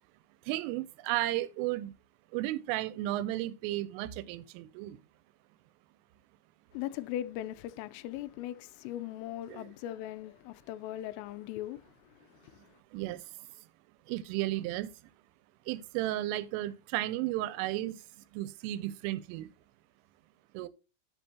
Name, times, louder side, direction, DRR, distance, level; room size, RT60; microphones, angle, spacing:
voice 1, 0.5-1.9 2.3-5.0 9.5-9.7 12.9-13.3 14.1-14.9 15.7-18.0 18.3-19.5 20.5-20.7, right 15 dB, 85° right, 3.0 m, -34 dB
voice 2, 6.7-12.8, left 13 dB, 85° left, 3.2 m, -40 dB
10.0 x 7.6 x 2.8 m
omnidirectional pair, 5.8 m